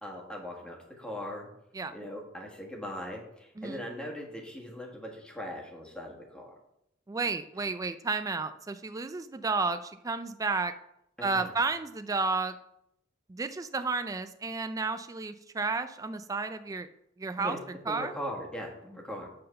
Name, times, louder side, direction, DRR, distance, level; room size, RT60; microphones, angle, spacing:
voice 1, 0.0-1.5 1.9-6.5 11.2-11.5 17.4-17.6 17.9-19.3, equal, 5° left, -2 dB, 1.5 m, -40 dB
voice 2, 7.1-10.7 11.2-12.5 13.3-16.9 17.2-17.6 17.9-18.1, right 4 dB, 20° right, 10 dB, 0.3 m, -32 dB
7.6 x 3.9 x 6.6 m, 0.78 s
head